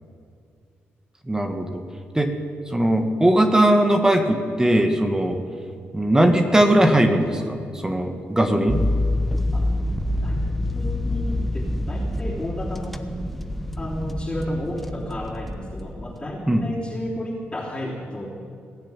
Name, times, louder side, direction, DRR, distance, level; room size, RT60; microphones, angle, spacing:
voice 1, 1.3-1.8 2.1-2.3 2.7-5.4 5.9-8.8 16.5-16.7, right 1 dB, 15° right, 5 dB, 1.5 m, -19 dB
sound 1, 8.7-16.2, left 1 dB, 5° left, 1.0 m, -27 dB
voice 2, 10.7-13.0 13.8-18.3, left 1 dB, 20° left, -7 dB, 3.6 m, -32 dB
19.5 x 7.5 x 8.9 m, 2.4 s
cardioid pair, 70°, 4 cm